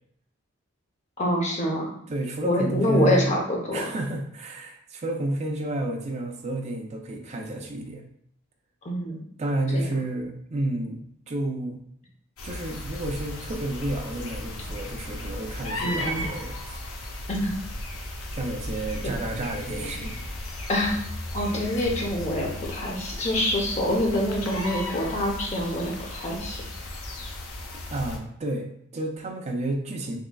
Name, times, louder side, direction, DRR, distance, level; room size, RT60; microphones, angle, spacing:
voice 1, 1.2-1.9 2.4-3.9 8.8-9.2 9.7-9.9 15.8-16.2 17.3-17.6 20.7-21.0 21.3-26.6, left 1 dB, 35° left, -1 dB, 0.7 m, -26 dB
voice 2, 2.1-3.3 3.7-8.0 9.4-11.0 11.3-11.8 12.4-16.8 18.3-20.2 27.9-30.2, right 2 dB, 30° right, 3 dB, 0.4 m, -30 dB
sound 1, 12.4-28.2, left 1 dB, 75° left, 0.6 m, -35 dB
3.7 x 3.0 x 2.3 m, 0.69 s
head